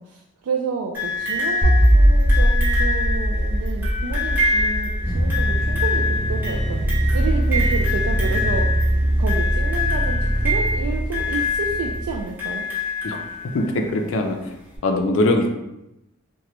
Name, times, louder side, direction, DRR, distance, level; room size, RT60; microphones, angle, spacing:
voice 1, 0.0-8.8 9.2-12.7, right 5 dB, 85° right, 1 dB, 0.3 m, -30 dB
sound 1, 0.9-13.8 14.7-14.8, left 2 dB, 10° right, 0.7 m, -26 dB
sound 2, 1.6-8.8, equal, 40° left, 0.7 m, -20 dB
sound 3, 5.0-12.2, right 1 dB, 40° right, 0.8 m, -22 dB
voice 2, 13.5-14.6 14.8-15.5, left 1 dB, 65° left, 4 dB, 0.4 m, -21 dB
3.0 x 2.2 x 2.9 m, 0.91 s
head